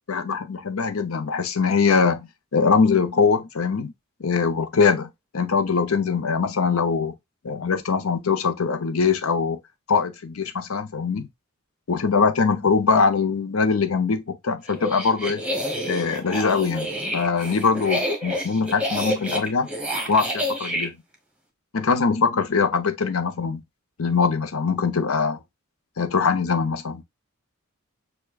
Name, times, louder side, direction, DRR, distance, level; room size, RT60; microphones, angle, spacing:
voice 1, 0.1-3.9 4.2-7.1 7.4-9.6 9.9-11.3 11.9-15.4 15.9-19.7 20.1-21.0 21.7-23.6 24.0-25.4 26.0-27.0, left 5 dB, 85° left, 0.6 m, -22 dB
sound 1, 14.7-20.9, equal, 5° right, 1.0 m, -28 dB
6.6 x 2.3 x 2.3 m
head